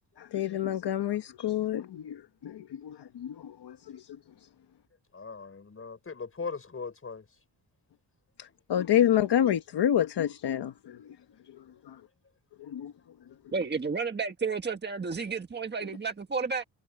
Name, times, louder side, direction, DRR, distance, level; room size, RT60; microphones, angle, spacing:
voice 1, 0.2-4.5 8.4-11.2 11.4-12.0 12.6-12.9, left 11 dB, 70° left, 1.2 m, -29 dB
voice 2, 5.1-7.3, left 5 dB, 30° left, 5.7 m, -39 dB
voice 3, 13.5-16.6, right 5 dB, 25° right, 1.6 m, -31 dB
wide cardioid pair, 145°, 41 cm